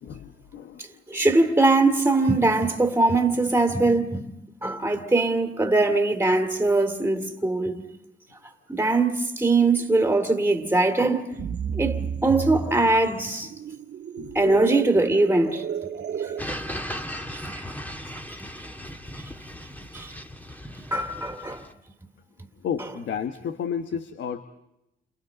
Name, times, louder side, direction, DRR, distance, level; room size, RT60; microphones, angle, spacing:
voice 1, 0.0-1.2 14.2-14.7 22.6-24.5, left 7 dB, 65° left, 1.2 m, -33 dB
voice 2, 1.1-4.3 4.6-7.8 8.7-11.3 11.6-13.5 14.3-15.6 17.4-17.7 18.4-18.5 19.9-20.1 20.9-21.6, right 2 dB, 10° right, 2.5 m, -22 dB
sound 1, 11.3-16.4, right 7 dB, 60° right, 1.9 m, -32 dB
sound 2, 16.4-21.7, equal, 10° left, 1.9 m, -37 dB
30.0 x 28.0 x 4.0 m
cardioid pair, 90°, 20 cm